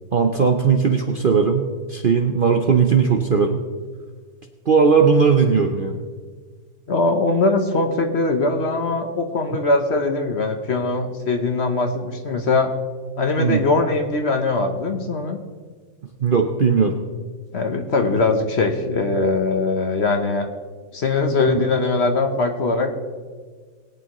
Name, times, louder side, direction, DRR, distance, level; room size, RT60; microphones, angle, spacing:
voice 1, 0.1-3.6 4.7-6.0 13.4-13.6 16.2-16.9 21.5-21.6, right 5 dB, 50° right, 4 dB, 0.7 m, -18 dB
voice 2, 6.9-12.7 13.2-15.4 17.5-20.5 20.9-22.9, left 3 dB, 50° left, 5 dB, 1.1 m, -21 dB
21.0 x 8.9 x 3.1 m, 1.5 s
omnidirectional pair, 1.7 m